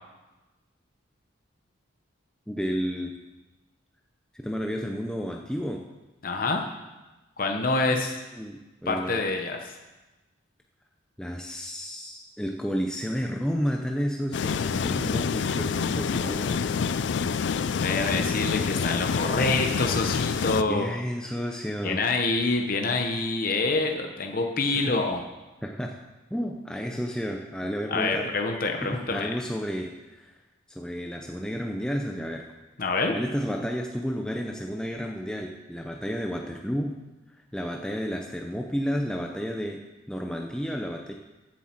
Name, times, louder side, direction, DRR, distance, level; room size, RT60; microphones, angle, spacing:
voice 1, 2.5-3.1 4.3-5.8 7.9-9.2 11.2-16.9 20.7-22.0 24.9-25.0 25.6-26.0 26.3-28.3 28.8-30.4 30.7-32.4 33.1-37.0 37.5-39.8 40.1-41.1, equal, 5° left, 1 dB, 0.6 m, -31 dB
voice 2, 6.2-6.6 7.4-8.2 8.9-9.8 17.7-20.9 21.8-25.2 27.9-29.3 32.8-33.1, left 3 dB, 45° left, 3 dB, 0.8 m, -26 dB
sound 1, 14.3-20.6, left 6 dB, 60° left, 0.4 m, -27 dB
15.0 x 7.4 x 4.4 m, 1.1 s
head